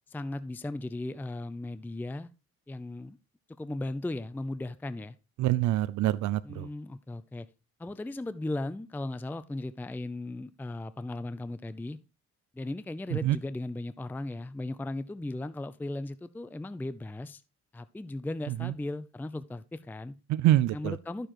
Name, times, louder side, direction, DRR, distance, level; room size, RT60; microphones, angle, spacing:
voice 1, 0.1-2.3 2.7-3.2 3.6-5.2 6.4-7.5 7.8-12.0 12.5-17.4 17.7-20.2 20.7-21.3, left 2 dB, 5° left, 0.5 m, -37 dB
voice 2, 5.4-6.7 13.2-13.4 20.3-20.9, right 14 dB, 75° right, 0.5 m, -25 dB
12.0 x 6.7 x 3.0 m
cardioid pair, 90°, 30 cm